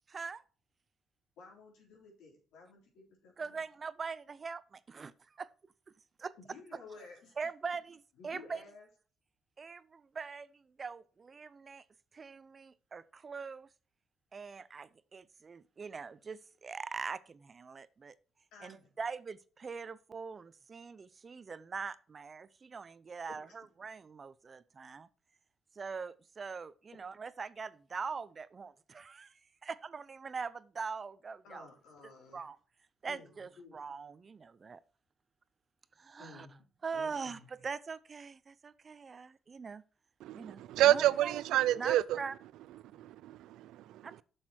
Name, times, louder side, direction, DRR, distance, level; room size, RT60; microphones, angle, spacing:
voice 1, 0.1-0.4 3.4-5.5 6.2-6.3 7.4-8.6 9.6-11.8 12.1-13.7 14.3-18.2 18.6-25.1 25.7-31.7 32.0-32.6 33.0-34.8 36.0-36.5 36.8-39.8 40.3-41.4 41.8-42.4 44.0-44.2, right 5 dB, 40° right, 0.6 m, -42 dB
voice 2, 1.4-3.5 6.4-7.3 8.2-8.9 18.5-18.9 31.4-32.4 33.1-33.8 36.2-36.6 36.9-37.5 40.9-41.3, left 3 dB, 85° left, 3.7 m, -54 dB
voice 3, 40.2-42.2 42.9-44.1, right 13 dB, 90° right, 0.4 m, -29 dB
7.4 x 6.5 x 4.4 m
cardioid pair, 90°, 0 cm